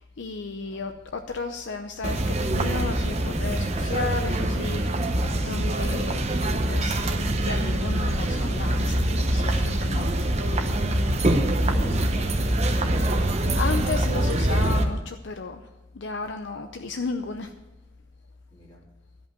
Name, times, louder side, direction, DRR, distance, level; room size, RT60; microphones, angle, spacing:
voice 1, 0.0-6.4 6.7-7.0 7.4-10.2 13.5-15.7 15.9-17.5, left 4 dB, 55° left, 6 dB, 0.6 m, -34 dB
sound 1, 2.0-14.8, right 1 dB, 30° right, 0.8 m, -24 dB
voice 2, 11.6-13.1 18.5-18.8, equal, 20° left, -3 dB, 2.6 m, -41 dB
13.0 x 5.5 x 9.4 m, 1.1 s
head